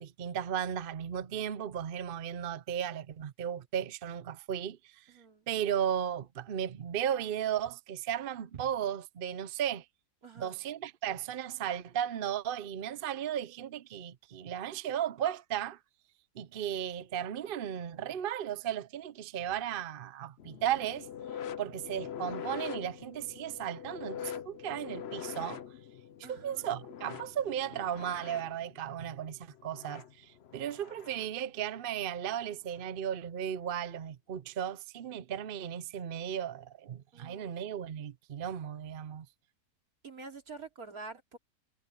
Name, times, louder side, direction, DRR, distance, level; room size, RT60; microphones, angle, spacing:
voice 1, 0.0-5.0 5.5-9.9 10.4-15.8 16.3-21.1 21.6-25.6 26.2-39.3, right 9 dB, 55° right, 0.6 m, -35 dB
voice 2, 5.1-5.5 10.2-10.6 26.2-26.7 37.1-37.5 40.0-41.4, right 4 dB, 70° right, 3.5 m, -47 dB
sound 1, 20.4-31.4 32.6-32.9 33.8-33.9, left 9 dB, 55° left, 0.9 m, -44 dB
omnidirectional pair, 1.6 m